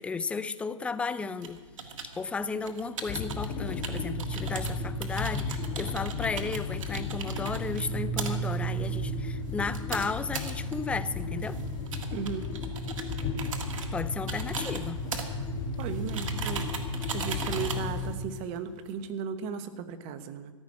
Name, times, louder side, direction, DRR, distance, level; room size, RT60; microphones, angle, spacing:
voice 1, 0.0-1.6 2.2-11.6 13.9-15.0, left 4 dB, 5° left, 14 dB, 0.4 m, -34 dB
sound 1, 1.4-18.9, right 6 dB, 75° right, 1.7 m, -40 dB
sound 2, 3.1-18.1, left 2 dB, 25° left, 1.2 m, -33 dB
voice 2, 12.1-12.5 15.8-16.7 17.1-20.5, right 7 dB, 35° right, 10 dB, 1.0 m, -36 dB
14.5 x 6.1 x 9.9 m, 1.4 s
hypercardioid pair, 135°, 17 cm